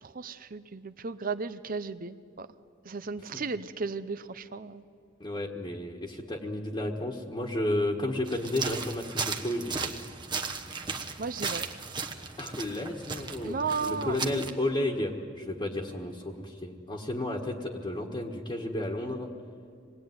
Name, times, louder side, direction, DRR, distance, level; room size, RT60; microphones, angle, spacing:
voice 1, 0.0-2.5 2.8-4.8 11.2-11.7 13.4-14.2, right 4 dB, 45° right, 12 dB, 0.7 m, -35 dB
voice 2, 5.2-9.7 12.4-19.3, left 1 dB, 25° left, -2 dB, 1.6 m, -32 dB
sound 1, 8.3-14.5, right 4 dB, 25° right, 1.1 m, -36 dB
26.0 x 20.0 x 9.5 m, 2.3 s
head